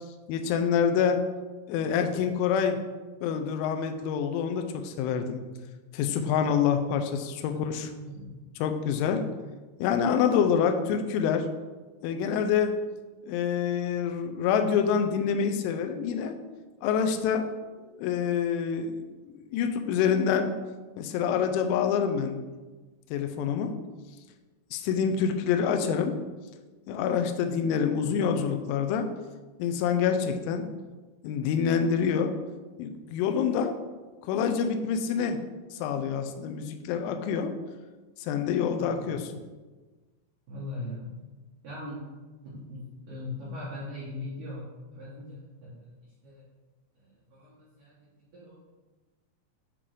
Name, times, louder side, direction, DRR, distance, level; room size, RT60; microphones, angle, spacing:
voice 1, 0.3-1.2 1.7-2.8 3.2-5.4 5.9-7.9 8.6-9.2 9.8-11.5 12.0-12.7 13.3-16.3 16.8-17.5 17.9-20.5 21.0-22.4 23.1-23.7 24.7-26.1 26.9-29.1 29.6-30.6 31.2-32.3 32.8-33.7 34.2-35.4 35.7-37.5 38.2-39.2, left 7 dB, 85° left, 6 dB, 2.9 m, -26 dB
voice 2, 7.4-8.4 39.0-39.3 40.5-41.1 41.6-42.0 42.4-46.4 47.0-48.6, left 1 dB, 85° right, -8 dB, 1.8 m, -41 dB
8.4 x 3.7 x 3.3 m, 1.3 s
omnidirectional pair, 5.9 m